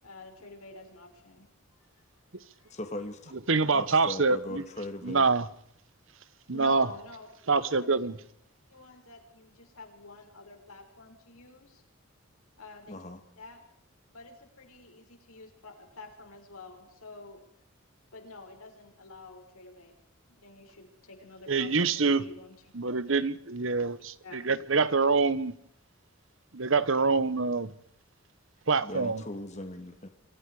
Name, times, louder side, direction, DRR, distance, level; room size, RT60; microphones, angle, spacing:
voice 1, 0.0-1.5 2.6-2.8 6.5-7.3 7.6-8.0 8.7-11.8 12.6-13.0 13.4-13.6 14.1-17.4 18.1-19.9 20.3-22.5 24.2-24.5, left 3 dB, 90° left, 6.0 m, -48 dB
voice 2, 2.7-3.3 3.7-5.3 12.9-13.2 28.8-30.1, left 1 dB, 30° left, 2.4 m, -39 dB
voice 3, 3.5-4.6 5.0-5.5 6.5-6.9 7.5-8.2 21.5-22.2 22.7-25.5 26.5-27.7 28.7-29.2, right 4 dB, 65° right, 1.2 m, -25 dB
28.5 x 26.0 x 5.0 m
head